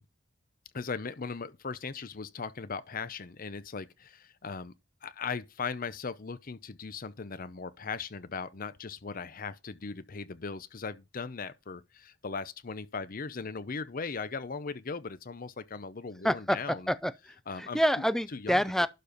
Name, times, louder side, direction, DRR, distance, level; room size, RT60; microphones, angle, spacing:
voice 1, 0.7-4.7 5.0-16.9 17.5-17.8 18.3-18.9, left 5 dB, 45° left, 0.7 m, -38 dB
voice 2, 16.2-18.9, equal, ahead, 0.5 m, -28 dB
12.0 x 4.4 x 5.1 m
head